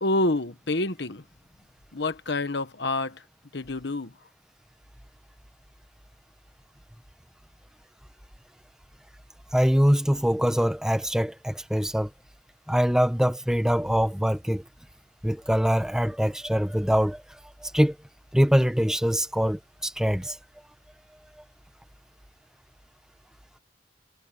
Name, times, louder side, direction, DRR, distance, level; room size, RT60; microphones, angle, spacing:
voice 1, 0.0-1.2 1.9-3.2 3.5-4.1, left 2 dB, 60° left, 1.2 m, -27 dB
voice 2, 9.5-12.1 12.7-14.6 15.2-17.2 17.6-18.0 18.3-20.4, equal, 5° right, 0.8 m, -23 dB
head